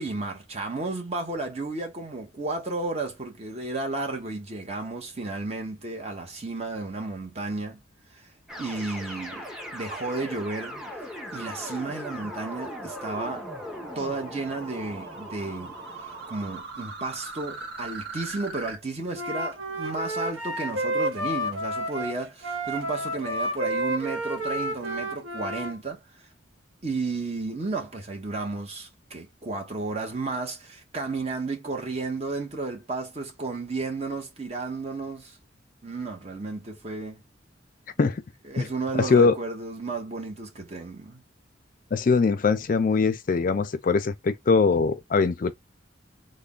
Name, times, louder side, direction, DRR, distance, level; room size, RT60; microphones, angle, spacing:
voice 1, 0.0-7.8 8.1-8.3 8.6-9.5 9.7-10.8 11.3-13.5 13.9-15.7 16.3-26.3 26.8-35.4 35.8-37.2 38.4-41.2, right 3 dB, 30° right, 0.9 m, -33 dB
sound 1, 8.5-16.6, equal, 5° right, 0.6 m, -39 dB
sound 2, 10.8-18.8, right 3 dB, 55° right, 1.0 m, -42 dB
Wind instrument woodwind instrument, 19.1-25.7, right 1 dB, 80° right, 0.8 m, -30 dB
voice 2, 39.0-39.4 41.9-45.5, left 4 dB, 45° left, 0.4 m, -22 dB
3.3 x 2.1 x 3.7 m
head